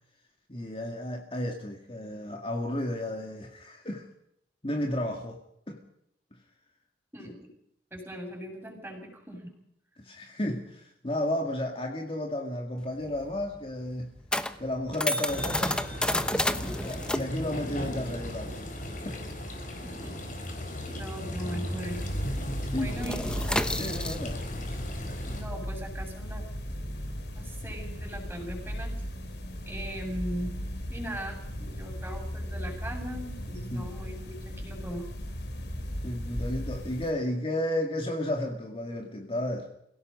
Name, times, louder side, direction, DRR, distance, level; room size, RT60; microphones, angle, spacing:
voice 1, 0.5-4.1 4.6-5.4 5.7-5.8 10.0-14.1 14.6-16.5 16.8-18.7 19.0-19.2 22.7-23.1 23.7-24.4 33.7-33.9 36.0-39.7, left 1 dB, 30° left, 2 dB, 2.3 m, -33 dB
voice 2, 7.9-9.5 19.8-20.1 20.9-22.0 22.8-23.4 24.1-24.2 25.3-26.4 27.4-28.9 29.7-30.6 30.9-35.1, equal, 10° right, 1 dB, 7.1 m, -39 dB
sound 1, 12.8-21.8 22.0-22.3 22.6-28.3, left 1 dB, 5° left, 0.9 m, -32 dB
sound 2, 15.3-25.4, equal, 45° left, 4.8 m, -36 dB
sound 3, 21.9-37.1, equal, 65° left, 3.2 m, -37 dB
28.0 x 17.0 x 5.4 m, 0.74 s
head